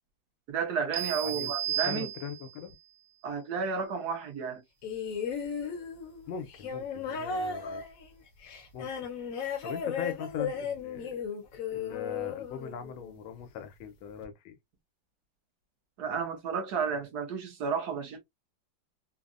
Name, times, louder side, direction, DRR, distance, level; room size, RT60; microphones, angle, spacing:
voice 1, 0.5-2.1 3.2-4.6 16.0-18.2, right 6 dB, 60° right, 1.2 m, -32 dB
sound 1, 0.9-2.6, right 12 dB, 80° right, 1.4 m, -33 dB
voice 2, 1.2-2.8 6.3-7.8 8.5-9.1 9.6-11.2 11.7-14.6, left 7 dB, 90° left, 1.5 m, -40 dB
sound 2, 4.8-13.2 14.2-14.3, left 6 dB, 60° left, 0.9 m, -36 dB
3.7 x 2.0 x 2.4 m
omnidirectional pair, 2.2 m